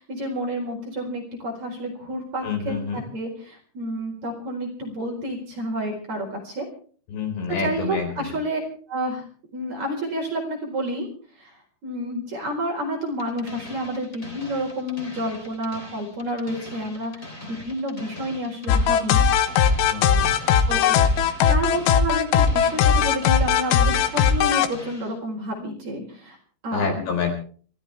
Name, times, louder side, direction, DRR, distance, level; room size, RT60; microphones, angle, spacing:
voice 1, 0.0-6.7 7.6-8.6 8.9-9.2 9.5-11.1 11.4-11.5 11.8-19.2 20.7-21.0 21.2-26.4 26.6-27.1, equal, 35° right, 0 dB, 5.2 m, -30 dB
voice 2, 2.4-3.0 7.1-8.3 19.9-20.3 26.7-27.3, left 5 dB, 60° left, 3 dB, 6.2 m, -28 dB
sound 1, 13.2-25.2, left 1 dB, 15° left, 2.3 m, -42 dB
sound 2, 18.7-24.7, left 7 dB, 90° left, 3.8 m, -18 dB
29.5 x 14.0 x 3.4 m, 0.44 s
omnidirectional pair, 5.9 m